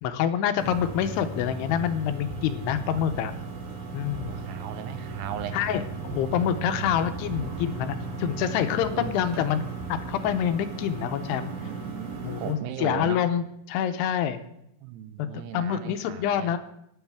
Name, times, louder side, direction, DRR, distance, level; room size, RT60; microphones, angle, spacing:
voice 1, 0.0-3.3 3.9-4.3 5.5-9.6 9.9-11.5 12.2-14.4 15.2-16.6, left 9 dB, 85° left, 10 dB, 2.7 m, -27 dB
sound 1, 0.6-12.5, right 3 dB, 60° right, 2.5 m, -36 dB
voice 2, 4.2-5.6 6.7-7.0 7.4-7.5 8.9-9.2 9.6-9.9 11.6-13.2 14.8-16.5, right 11 dB, 80° right, 11 dB, 2.7 m, -37 dB
15.5 x 9.8 x 3.5 m, 0.77 s
omnidirectional pair, 4.8 m